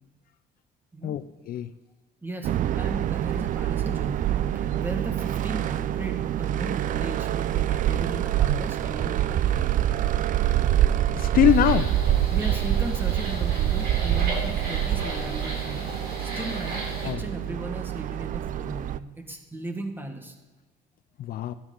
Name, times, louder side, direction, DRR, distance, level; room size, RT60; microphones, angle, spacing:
voice 1, 1.0-1.7 11.2-11.9 17.0-17.2 21.2-21.5, left 11 dB, 60° left, 12 dB, 0.5 m, -23 dB
voice 2, 2.2-9.7 12.3-15.9 16.3-20.3, right 2 dB, 10° right, 5 dB, 1.6 m, -36 dB
sound 1, 2.4-19.0, right 12 dB, 50° right, 0.4 m, -26 dB
sound 2, 11.4-17.1, right 2 dB, 70° right, 3.7 m, -35 dB
13.5 x 10.0 x 3.9 m, 1.2 s
cardioid pair, 110°, 17 cm